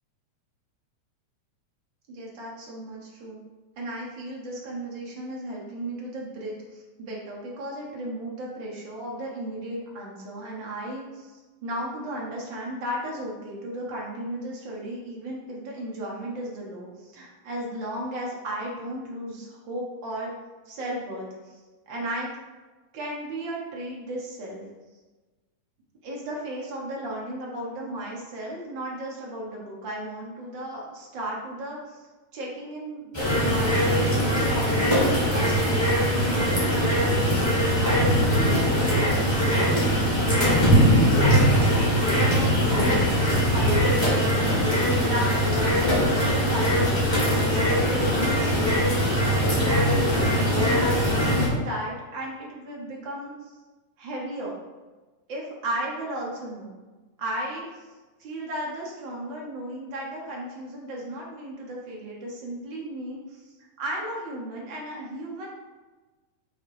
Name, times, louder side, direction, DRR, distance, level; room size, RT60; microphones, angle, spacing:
voice 1, 2.1-3.4 3.8-20.3 20.6-21.6 21.9-22.3 22.9-24.6 26.0-32.0 32.3-35.8 36.1-48.9 49.6-53.5 54.0-54.6 55.3-56.8 57.2-57.8 58.2-65.5, right 1 dB, 55° right, -3 dB, 1.3 m, -35 dB
sound 1, 33.1-51.5, equal, 20° left, 0.8 m, -21 dB
6.0 x 3.9 x 4.8 m, 1.2 s
omnidirectional pair, 3.6 m